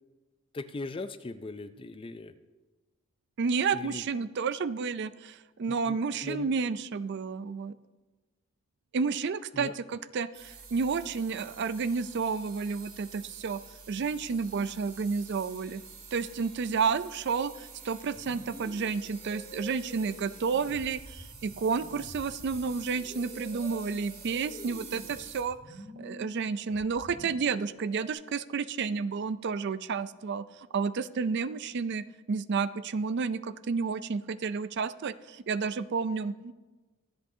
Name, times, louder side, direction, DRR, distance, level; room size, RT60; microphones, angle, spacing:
voice 1, 0.5-2.3 3.7-4.0 5.7-6.5 9.5-9.7, left 2 dB, 25° left, 11 dB, 0.4 m, -39 dB
voice 2, 3.4-7.8 8.9-13.6 13.9-15.8 16.1-25.6 26.0-30.4 30.7-36.5, right 5 dB, 50° right, 14 dB, 0.4 m, -31 dB
sound 1, 10.3-25.4, right 5 dB, 80° right, 2.4 m, -48 dB
sound 2, 18.1-28.1, equal, 10° right, 2.2 m, -48 dB
23.5 x 7.9 x 2.7 m, 1.2 s
head